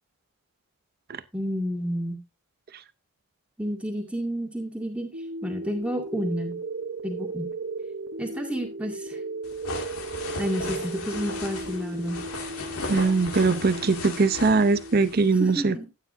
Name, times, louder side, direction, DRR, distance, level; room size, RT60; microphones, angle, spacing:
voice 1, 1.3-2.2 3.6-5.1 5.4-6.6 7.0-7.5 8.2-9.2 10.4-12.2 15.4-15.9, equal, 5° right, 2.2 m, -30 dB
sound 1, 5.1-15.1, right 3 dB, 65° right, 1.1 m, -36 dB
sound 2, 9.4-15.3, left 3 dB, 90° left, 2.3 m, -36 dB
voice 2, 12.9-15.8, right 4 dB, 45° right, 0.6 m, -21 dB
13.0 x 9.4 x 2.6 m
head